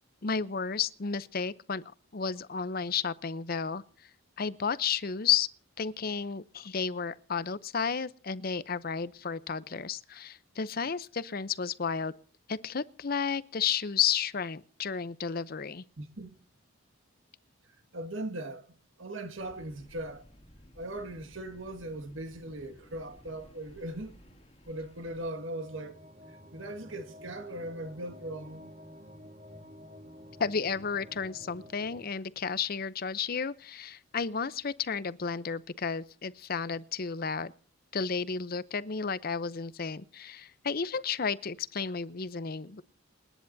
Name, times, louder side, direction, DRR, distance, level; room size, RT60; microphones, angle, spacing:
voice 1, 0.2-1.8 2.1-3.8 4.4-5.5 5.8-12.1 12.5-15.8 30.4-37.5 37.9-42.8, left 6 dB, 45° left, 0.6 m, -32 dB
voice 2, 16.0-16.4 17.9-18.7 19.0-20.2 20.8-24.4 24.6-26.0 26.3-28.6, right 1 dB, 70° right, 1.8 m, -39 dB
sound 1, 19.4-25.3, equal, 30° left, 2.1 m, -56 dB
sound 2, 24.7-32.1, equal, 35° right, 1.6 m, -51 dB
28.5 x 10.0 x 2.7 m
head